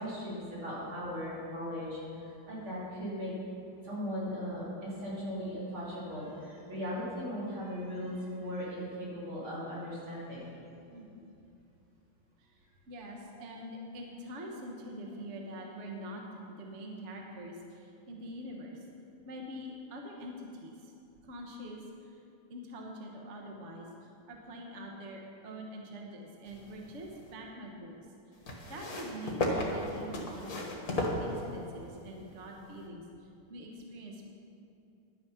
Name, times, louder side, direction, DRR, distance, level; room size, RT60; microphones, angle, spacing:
voice 1, 0.0-3.3 3.8-10.6, equal, 70° right, -7 dB, 4.0 m, -38 dB
voice 2, 10.9-11.3 12.4-12.6 12.9-16.2 16.5-18.8 19.2-20.9 21.2-22.2 22.5-28.1 28.7-34.3, equal, 40° right, 0 dB, 1.2 m, -45 dB
sound 1, 26.5-27.3 28.4-31.9 32.8-32.9, left 1 dB, 50° left, 1.8 m, -35 dB
11.0 x 9.2 x 5.7 m, 2.7 s
omnidirectional pair, 2.3 m